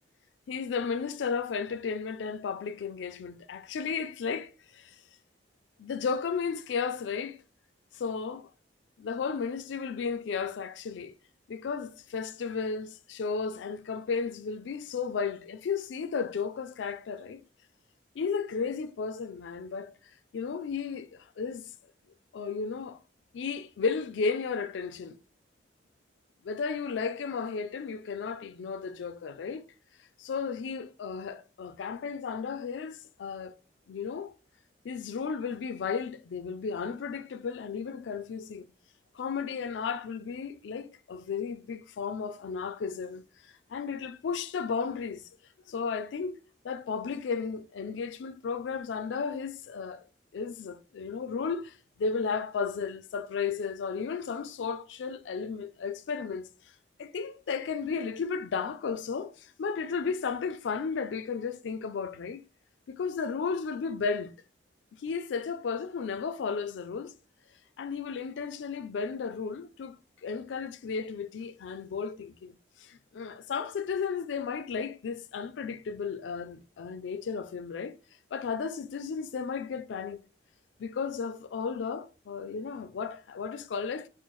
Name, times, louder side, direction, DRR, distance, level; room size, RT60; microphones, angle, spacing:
voice 1, 0.5-5.0 5.8-7.4 7.9-8.5 9.0-11.1 11.5-17.4 18.2-19.9 20.3-21.7 22.3-23.0 23.3-25.2 26.4-29.6 30.2-33.6 33.9-34.3 34.8-38.7 39.1-43.2 43.7-45.3 45.7-50.0 50.3-56.5 57.0-62.4 62.9-64.3 64.9-67.1 67.8-70.0 70.2-78.0 78.3-80.2 80.8-84.1, left 5 dB, 85° left, 0.4 m, -34 dB
4.2 x 2.1 x 3.0 m
head